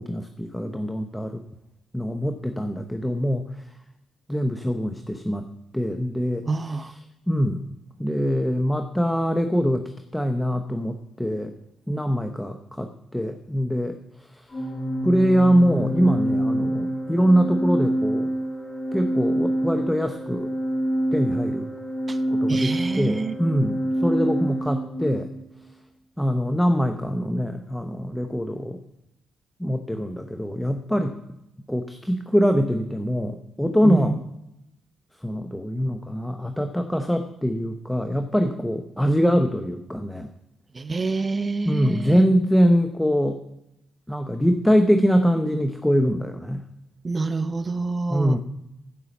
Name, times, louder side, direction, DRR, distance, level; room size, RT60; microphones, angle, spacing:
voice 1, 0.0-1.4 1.9-3.5 4.3-7.0 7.3-7.6 8.0-11.5 11.9-14.4 15.0-18.3 18.9-20.5 21.1-21.7 22.3-25.3 26.2-28.8 29.6-31.2 31.7-34.2 35.2-40.3 41.6-43.4 44.1-46.6 48.1-48.4, equal, 5° left, 7 dB, 0.8 m, -23 dB
voice 2, 6.5-6.9 22.1-22.2 22.5-23.3 33.8-34.1 40.7-42.2 47.0-48.4, right 3 dB, 30° right, 13 dB, 0.7 m, -27 dB
Organ, 14.5-25.3, equal, 30° left, 4.2 m, -26 dB
14.0 x 5.6 x 7.1 m, 0.85 s
cardioid pair, 90°, 0 cm